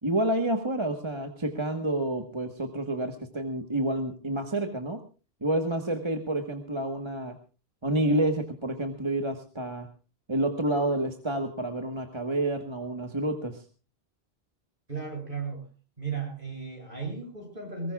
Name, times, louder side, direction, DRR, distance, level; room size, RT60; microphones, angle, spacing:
voice 1, 0.0-5.0 5.4-7.4 7.8-9.9 10.3-13.6, right 1 dB, 25° right, 5 dB, 1.4 m, -29 dB
voice 2, 14.9-15.7 16.0-17.9, right 5 dB, 50° right, 1 dB, 8.3 m, -35 dB
23.0 x 21.0 x 2.4 m, 0.34 s
omnidirectional pair, 1.1 m